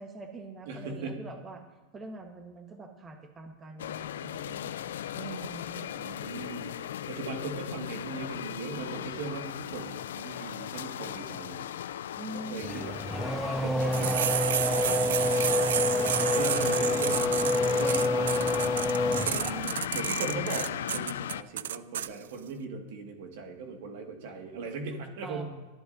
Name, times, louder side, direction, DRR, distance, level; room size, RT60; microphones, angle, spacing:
voice 1, 0.0-1.6 1.9-4.8 5.1-5.9 12.2-12.9 25.2-25.4, right 3 dB, 20° right, 4 dB, 1.3 m, -44 dB
voice 2, 0.7-1.2 6.0-6.7 7.1-11.7 12.5-13.0 13.6-15.8 16.3-18.4 19.1-25.4, right 4 dB, 65° right, 3 dB, 1.9 m, -39 dB
sound 1, 3.8-21.4, left 10 dB, 80° left, 0.4 m, -37 dB
Race car auto racing / Accelerating revving vroom, 12.6-19.9, left 2 dB, ahead, 0.4 m, -28 dB
sound 2, 13.9-22.1, right 10 dB, 80° right, 0.3 m, -31 dB
24.0 x 8.0 x 2.7 m, 1.3 s
hypercardioid pair, 125°, 0 cm